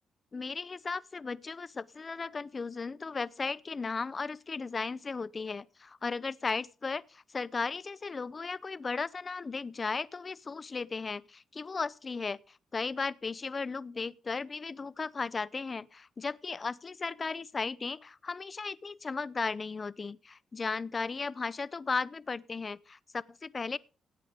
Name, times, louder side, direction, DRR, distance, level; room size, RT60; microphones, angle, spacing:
voice 1, 0.3-23.8, left 4 dB, 35° left, 0.6 m, -36 dB
17.0 x 8.4 x 5.0 m
cardioid pair, 75°, 0 cm